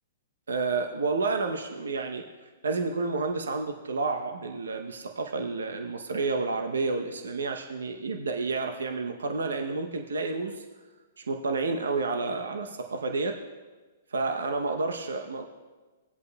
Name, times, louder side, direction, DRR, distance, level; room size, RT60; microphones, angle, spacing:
voice 1, 0.5-2.2 2.6-10.6 11.2-13.4 14.1-15.4, right 3 dB, 85° right, 4 dB, 0.8 m, -30 dB
18.5 x 8.2 x 2.3 m, 1.3 s
hypercardioid pair, 125°, 0 cm